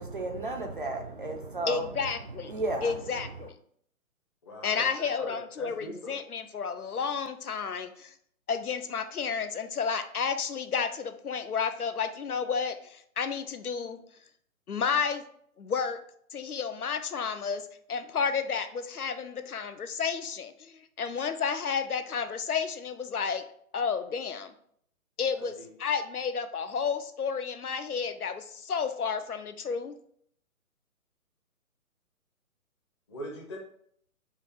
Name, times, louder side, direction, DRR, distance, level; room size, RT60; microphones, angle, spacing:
voice 1, 0.0-2.0 2.3-3.4, right 2 dB, 40° right, 0.4 m, -34 dB
voice 2, 1.7-2.5 2.8-3.5 4.6-8.1 8.5-14.0 14.7-15.2 15.6-16.0 16.3-23.4 23.7-24.5 25.2-29.9, left 6 dB, 85° left, 0.6 m, -31 dB
voice 3, 4.4-6.2 25.4-25.7 33.1-33.6, left 1 dB, 20° left, 0.7 m, -41 dB
4.9 x 2.5 x 4.3 m
figure-of-eight pair, 135°, 44 cm